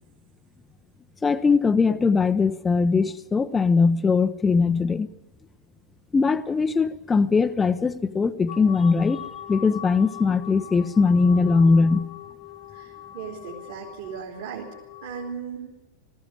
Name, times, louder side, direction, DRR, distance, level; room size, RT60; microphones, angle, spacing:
voice 1, 1.2-5.1 6.1-12.0, left 4 dB, 15° left, 10 dB, 0.6 m, -21 dB
sound 1, 8.5-15.3, left 11 dB, 45° left, 0.8 m, -41 dB
voice 2, 12.7-14.7 15.0-15.7, right 7 dB, 55° right, -1 dB, 3.2 m, -37 dB
19.5 x 14.5 x 9.6 m, 1.0 s
figure-of-eight pair, 90°, 0 cm